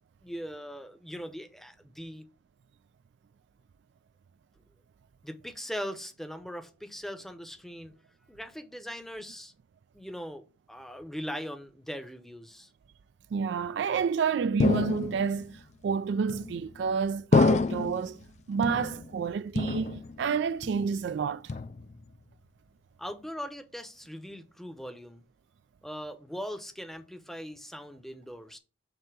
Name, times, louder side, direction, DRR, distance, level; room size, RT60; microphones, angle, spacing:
voice 1, 0.2-2.2 5.2-7.9 8.3-9.5 9.9-12.7 23.0-25.2 25.8-28.6, equal, ahead, 0.7 m, -40 dB
voice 2, 13.3-18.2 18.5-21.5, right 6 dB, 60° right, 0.3 m, -29 dB
sound 1, 14.6-15.4 16.3-16.8 17.3-18.1 18.6-19.2 19.5-20.3 20.6-21.1 21.5-22.1, left 3 dB, 35° left, 0.4 m, -27 dB
7.8 x 2.8 x 6.0 m
head